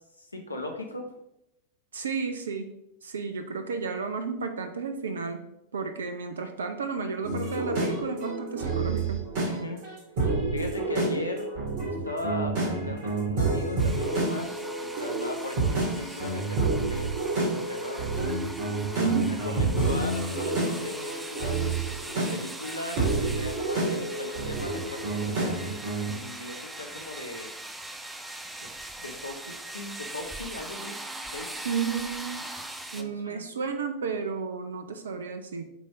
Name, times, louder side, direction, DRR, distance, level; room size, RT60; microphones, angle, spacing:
voice 1, 0.2-1.1 9.5-9.8 10.5-11.5 11.8-18.5 19.0-19.1 19.4-27.5 28.6-28.7 29.0-31.0 31.3-31.7 32.9-33.4, left 1 dB, 80° left, 3 dB, 1.0 m, -38 dB
voice 2, 1.9-2.7 3.0-5.4 5.7-9.3 19.0-19.4 31.6-32.5 32.9-35.6, right 5 dB, 70° right, 7 dB, 0.6 m, -32 dB
sound 1, 7.2-26.2, right 3 dB, 50° right, 2.3 m, -29 dB
sound 2, 13.8-33.0, right 1 dB, 5° right, 0.6 m, -41 dB
8.1 x 3.4 x 3.7 m, 0.82 s
figure-of-eight pair, 90°, 0 cm